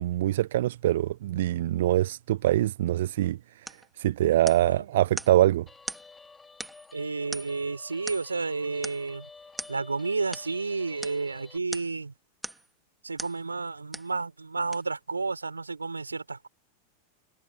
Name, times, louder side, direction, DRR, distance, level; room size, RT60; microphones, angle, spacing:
voice 1, 0.0-5.7, right 13 dB, 55° right, 0.7 m, -24 dB
sound 1, 3.7-3.9 4.5-4.8 5.2-5.4 5.9-6.1 6.6-6.9 7.3-7.7 8.1-8.4 8.8-9.1 9.6-9.8 10.3-10.5 11.0-11.2 11.7-12.0 12.4-12.7 13.2-13.4 13.9-14.2 14.7-14.8, right 1 dB, 5° right, 2.5 m, -39 dB
Guitar, 5.7-11.6, left 4 dB, 10° left, 4.4 m, -51 dB
voice 2, 6.9-9.3 9.7-12.1 13.0-16.5, right 4 dB, 80° right, 4.2 m, -31 dB
figure-of-eight pair, 90°, 0 cm